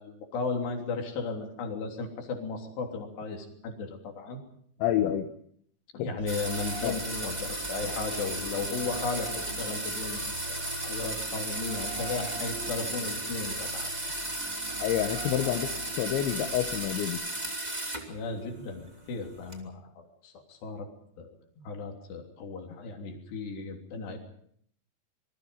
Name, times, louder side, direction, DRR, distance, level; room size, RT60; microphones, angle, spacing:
voice 1, 0.0-4.4 5.9-13.9 18.1-20.9 21.2-21.3 21.7-24.2, left 4 dB, 70° left, 2 dB, 5.4 m, -35 dB
voice 2, 4.8-5.3 6.0-6.1 6.8-7.0 14.8-17.2, left 11 dB, 85° left, 6 dB, 3.5 m, -28 dB
sound 1, 6.2-17.1, right 3 dB, 70° right, 5.3 m, -43 dB
sound 2, 6.3-18.1 18.5-19.5, right 1 dB, 10° right, 2.2 m, -35 dB
26.5 x 21.5 x 5.6 m, 0.64 s
omnidirectional pair, 5.2 m